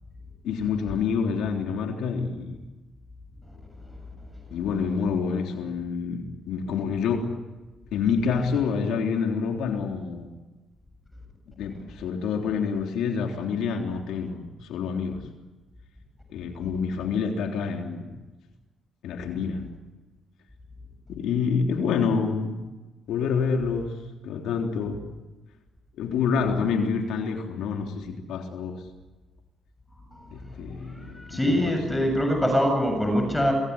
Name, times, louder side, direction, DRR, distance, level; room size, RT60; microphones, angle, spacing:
voice 1, 0.4-2.6 4.5-7.4 7.9-10.3 11.6-15.3 16.3-18.1 19.0-19.7 21.1-22.6 23.1-24.0 24.2-25.0 26.0-28.8 30.3-32.0, left 6 dB, 85° left, 2 dB, 3.6 m, -27 dB
voice 2, 31.0-33.5, equal, 5° left, 4 dB, 7.8 m, -24 dB
26.5 x 20.5 x 9.9 m, 1.2 s
cardioid pair, 90°, 0 cm